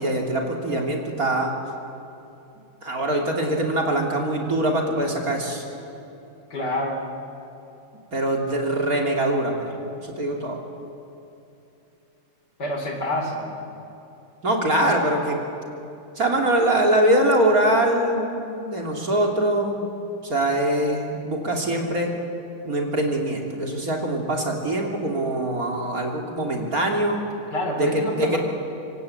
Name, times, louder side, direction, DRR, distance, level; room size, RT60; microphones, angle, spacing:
voice 1, 0.0-1.5 2.8-5.6 8.1-9.7 10.0-10.6 14.4-15.4 16.2-20.0 20.2-22.1 22.7-27.2 27.8-28.4, right 1 dB, 40° right, 0 dB, 3.5 m, -23 dB
voice 2, 6.5-7.0 12.6-13.5 27.5-28.4, left 1 dB, 50° left, 3 dB, 4.3 m, -27 dB
26.5 x 25.0 x 8.6 m, 2.8 s
omnidirectional pair, 2.3 m